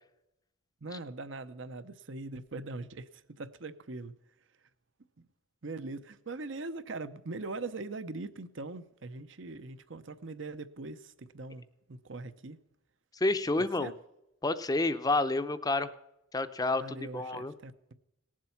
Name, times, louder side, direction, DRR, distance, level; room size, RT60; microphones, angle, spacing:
voice 1, 0.8-4.1 5.2-5.3 5.6-12.6 13.8-13.9 16.8-17.9, right 3 dB, 65° right, 12 dB, 0.8 m, -41 dB
voice 2, 13.1-13.9 14.4-15.9 16.3-17.5, left 2 dB, 20° left, 12 dB, 0.6 m, -29 dB
18.5 x 7.5 x 5.8 m, 0.86 s
head